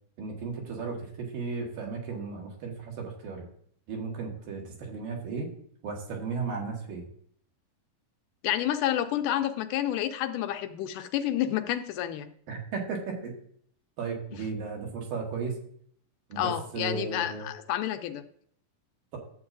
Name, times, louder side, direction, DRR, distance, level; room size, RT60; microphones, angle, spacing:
voice 1, 0.2-3.4 3.9-5.5 5.8-7.0 12.5-13.3 14.0-15.6 16.3-17.4, right 4 dB, 80° right, -1 dB, 3.4 m, -35 dB
voice 2, 8.4-12.3 16.4-18.2, left 11 dB, 80° left, 8 dB, 2.0 m, -29 dB
12.0 x 7.9 x 2.6 m, 0.63 s
omnidirectional pair, 3.9 m